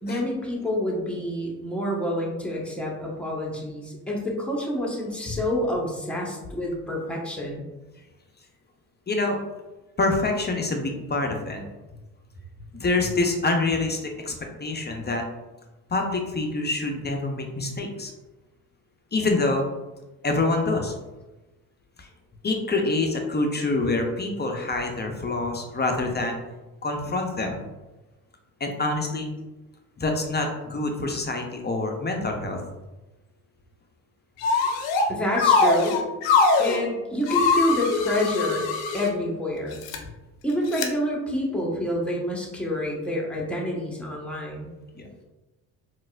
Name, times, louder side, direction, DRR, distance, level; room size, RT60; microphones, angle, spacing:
voice 1, 0.0-7.7 35.1-36.0 36.6-38.6 38.9-39.8 40.4-44.7, equal, 5° left, -3 dB, 1.1 m, -28 dB
voice 2, 9.1-9.4 10.0-11.6 12.8-14.3 14.6-15.2 15.9-18.1 19.1-19.7 20.2-20.9 22.0-22.1 22.4-26.4 26.8-27.6 28.6-29.3 30.0-32.6 44.9-45.1, left 2 dB, 25° left, 3 dB, 0.6 m, -26 dB
sound 1, 34.4-35.1 35.4-36.8 37.3-39.1 39.7-40.0 40.7-40.9, left 4 dB, 75° left, 0.6 m, -22 dB
3.9 x 2.5 x 2.3 m, 1.1 s
hypercardioid pair, 55°, 44 cm